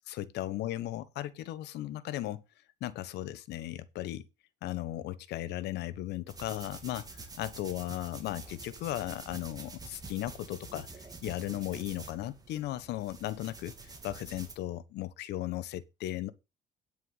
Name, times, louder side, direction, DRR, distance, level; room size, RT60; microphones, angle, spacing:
voice 1, 0.0-2.4 2.8-4.2 4.6-16.3, left 14 dB, 80° left, 1.2 m, -36 dB
sound 1, 6.3-14.5, right 3 dB, 20° right, 3.0 m, -47 dB
9.8 x 6.4 x 5.6 m
cardioid pair, 110°, 17 cm